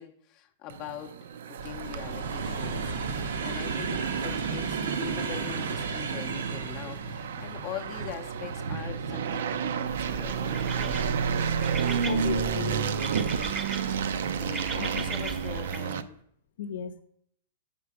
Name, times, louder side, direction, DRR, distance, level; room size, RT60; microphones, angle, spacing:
voice 1, 0.0-11.1 14.3-16.2, left 10 dB, 30° left, 5 dB, 0.6 m, -43 dB
sound 1, 0.7-16.0, right 7 dB, 70° right, 0.5 m, -32 dB
sound 2, 1.6-12.7 13.3-14.0 14.9-15.1 15.4-15.5, right 5 dB, 85° right, 1.1 m, -35 dB
sound 3, 9.9-15.8, right 3 dB, 15° right, 0.6 m, -38 dB
voice 2, 12.0-13.0 14.7-15.1 16.6-17.0, left 7 dB, 70° left, 8 dB, 0.7 m, -35 dB
7.1 x 6.7 x 4.8 m, 0.68 s
supercardioid pair, 165°, 0 cm